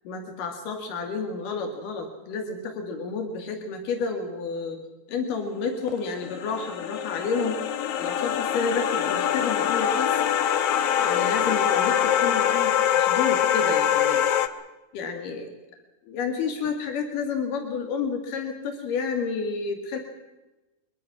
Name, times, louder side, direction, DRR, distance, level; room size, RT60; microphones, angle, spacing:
voice 1, 0.1-4.8 5.1-7.6 8.0-10.2 11.0-12.0 12.2-14.2 14.9-15.5 16.1-20.0, left 5 dB, 85° left, 4 dB, 3.6 m, -30 dB
sound 1, 6.0-14.5, left 10 dB, 60° left, 1.8 m, -24 dB
23.5 x 22.0 x 6.0 m, 1.1 s
omnidirectional pair, 3.7 m